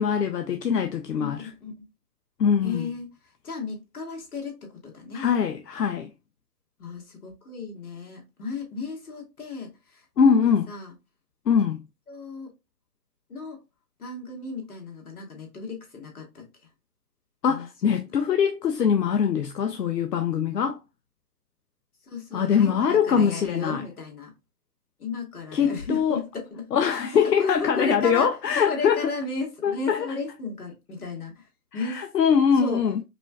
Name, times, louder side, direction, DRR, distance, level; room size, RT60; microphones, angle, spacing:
voice 1, 0.0-1.5 2.4-2.9 5.1-6.1 10.2-10.7 11.5-11.8 17.4-20.8 22.3-23.8 25.5-26.2 26.7-29.0 29.6-30.1 31.7-33.0, left 7 dB, 85° left, 0.6 m, -23 dB
voice 2, 1.2-1.9 2.6-3.1 3.4-5.2 6.8-10.9 12.1-12.5 13.3-13.6 14.0-16.4 17.5-17.9 22.0-24.3 25.0-28.3 28.7-32.1 32.6-32.8, left 4 dB, 65° left, 1.9 m, -35 dB
4.9 x 2.5 x 2.2 m
figure-of-eight pair, 140°, 47 cm